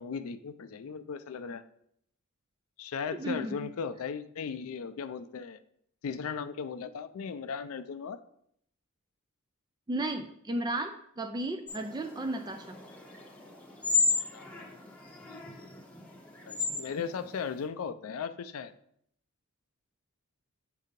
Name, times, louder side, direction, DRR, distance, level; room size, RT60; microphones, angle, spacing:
voice 1, 0.0-1.6 2.8-5.6 6.0-8.2 14.3-14.8 15.3-15.7 16.5-18.7, left 6 dB, 75° left, 10 dB, 0.4 m, -37 dB
voice 2, 3.1-3.6 9.9-12.8, right 2 dB, 20° right, 6 dB, 0.3 m, -34 dB
sound 1, 11.7-17.6, left 4 dB, 5° left, 0.9 m, -34 dB
7.6 x 2.7 x 5.2 m, 0.70 s
head